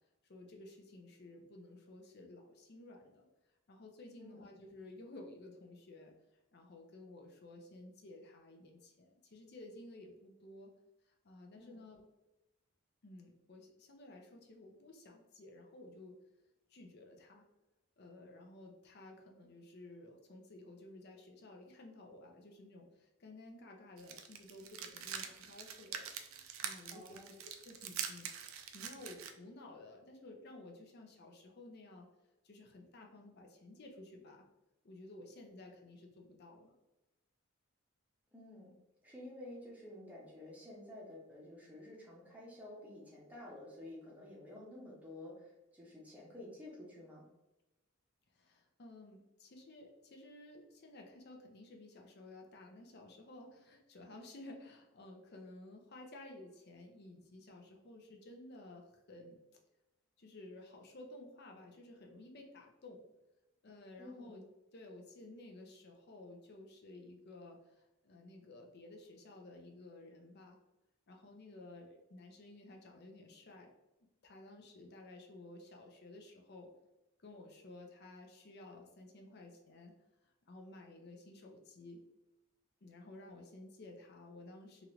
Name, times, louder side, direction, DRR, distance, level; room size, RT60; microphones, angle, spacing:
voice 1, 0.2-3.3 3.7-6.1 6.5-10.7 11.2-12.0 13.0-16.2 16.7-17.4 18.0-26.1 26.6-28.3 28.7-32.1 32.4-34.4 34.8-36.7 48.3-59.4 60.2-63.0 63.6-64.5 64.7-70.6 71.1-73.7 74.2-76.7 77.2-79.9 80.5-82.0 82.8-84.9, left 2 dB, 50° left, 2 dB, 0.6 m, -54 dB
voice 2, 4.2-4.5 11.5-11.8 26.9-27.3 38.3-38.8 39.0-47.2 64.0-64.4, left 1 dB, 5° right, -3 dB, 0.7 m, -51 dB
sound 1, 24.0-29.3, right 8 dB, 70° right, 0.4 m, -44 dB
3.0 x 2.5 x 3.0 m, 0.97 s
head